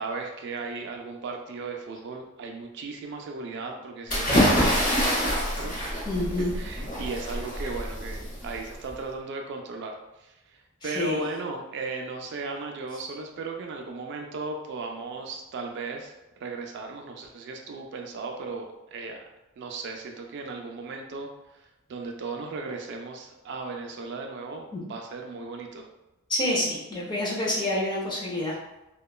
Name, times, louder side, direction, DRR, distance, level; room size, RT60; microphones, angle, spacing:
voice 1, 0.0-5.8 6.5-16.1 16.4-19.3 19.6-25.9, right 3 dB, 55° right, 2 dB, 0.3 m, -36 dB
sound 1, 4.1-8.9, equal, 40° left, 0.9 m, -26 dB
voice 2, 6.0-6.5 10.8-11.2 24.7-24.8 26.3-28.5, left 1 dB, 20° left, -4 dB, 0.6 m, -28 dB
2.9 x 2.2 x 2.3 m, 0.96 s
head